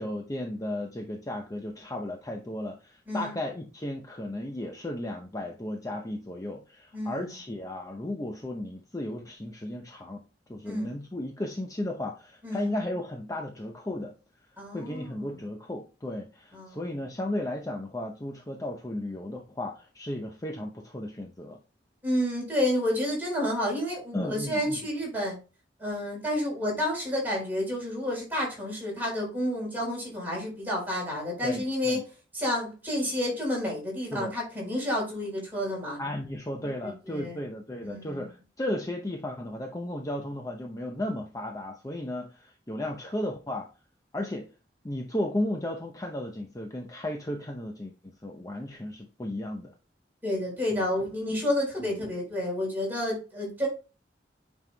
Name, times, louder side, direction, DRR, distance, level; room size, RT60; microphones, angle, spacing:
voice 1, 0.0-10.2 10.5-14.1 14.7-21.6 24.1-24.8 31.4-32.0 34.1-34.3 36.0-43.7 44.1-44.5 44.8-47.9 48.2-49.7 50.7-50.9 51.8-51.9, left 1 dB, 20° left, 0.7 m, -34 dB
voice 2, 6.9-7.3 10.6-10.9 12.4-12.7 14.6-15.2 16.5-16.8 22.0-25.4 25.8-32.0 32.3-36.0 36.8-37.4 37.8-38.3 50.2-53.7, left 1 dB, 10° right, 4.0 m, -30 dB
8.7 x 5.4 x 2.2 m
head